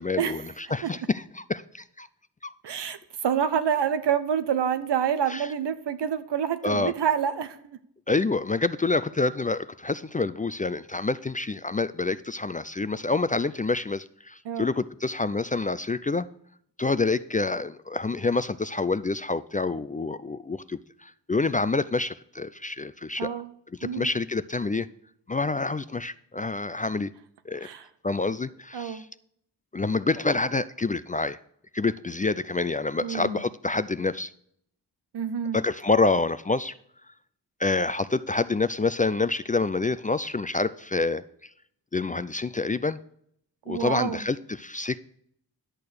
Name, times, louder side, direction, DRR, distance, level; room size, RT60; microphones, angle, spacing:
voice 1, 0.0-2.1 2.4-2.5 5.3-5.5 6.6-6.9 8.1-16.3 16.8-23.3 23.8-24.9 25.3-27.1 27.5-27.7 28.0-29.1 29.7-31.4 31.7-34.3 35.5-36.7 37.6-41.2 41.9-43.0 43.7-45.0, left 3 dB, 20° left, 14 dB, 0.4 m, -27 dB
voice 2, 2.6-7.8 14.4-14.7 23.2-23.5 23.8-24.1 27.6-27.9 28.7-29.0 33.0-33.4 35.1-35.6 43.7-44.2, right 8 dB, 75° right, 11 dB, 0.9 m, -27 dB
10.5 x 6.7 x 6.4 m, 0.69 s
cardioid pair, 45°, 42 cm